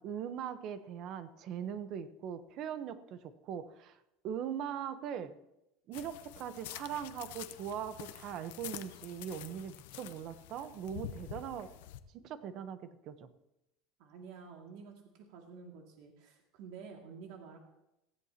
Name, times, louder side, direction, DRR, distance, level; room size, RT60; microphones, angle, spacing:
voice 1, 0.0-4.0 4.2-5.4 5.9-11.7 12.1-13.3, right 8 dB, 45° right, 11 dB, 1.0 m, -41 dB
sound 1, 5.9-12.0, left 12 dB, 85° left, 0.8 m, -47 dB
voice 2, 14.0-17.6, right 5 dB, 65° right, 0 dB, 2.4 m, -50 dB
19.0 x 15.5 x 3.0 m, 0.87 s
cardioid pair, 150°, 0 cm